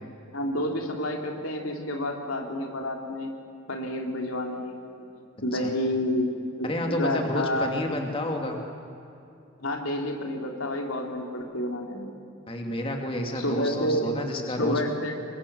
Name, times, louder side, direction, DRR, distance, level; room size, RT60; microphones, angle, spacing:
voice 1, 0.3-3.4 3.7-5.1 5.4-6.3 6.6-7.7 9.6-12.1 13.3-14.1 14.6-15.1, left 1 dB, 90° left, 2 dB, 3.4 m, -29 dB
voice 2, 6.6-8.6 12.5-14.8, left 1 dB, 25° left, 2 dB, 2.5 m, -30 dB
28.5 x 23.5 x 7.0 m, 2.7 s
head